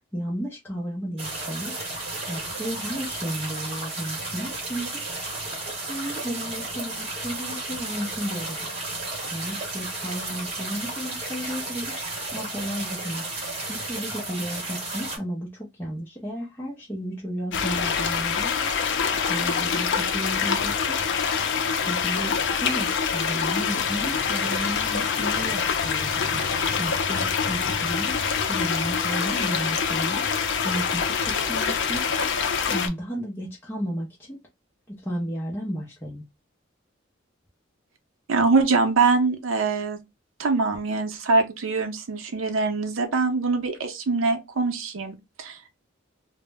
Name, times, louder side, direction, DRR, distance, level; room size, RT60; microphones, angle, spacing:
voice 1, 0.1-1.8 2.3-5.1 5.9-8.8 9.3-12.0 12.3-13.3 13.7-18.7 19.3-21.0 21.9-26.4 26.8-28.2 28.4-30.3 30.6-32.0 32.7-34.4 34.9-36.3, equal, 10° left, 0.5 m, -33 dB
sound 1, 1.2-15.2, right 2 dB, 30° right, 1.0 m, -33 dB
sound 2, 17.5-32.9, left 6 dB, 60° left, 0.4 m, -25 dB
voice 2, 38.3-40.0 40.4-45.7, right 4 dB, 80° right, 0.6 m, -23 dB
2.1 x 2.0 x 3.3 m
head